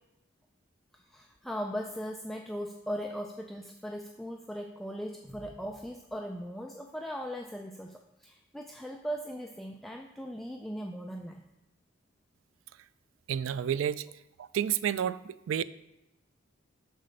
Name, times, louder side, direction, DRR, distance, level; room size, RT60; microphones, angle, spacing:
voice 1, 0.9-11.4, equal, ahead, 0.3 m, -39 dB
voice 2, 13.3-14.0 14.4-15.6, right 9 dB, 85° right, 0.3 m, -30 dB
6.2 x 4.2 x 6.4 m
head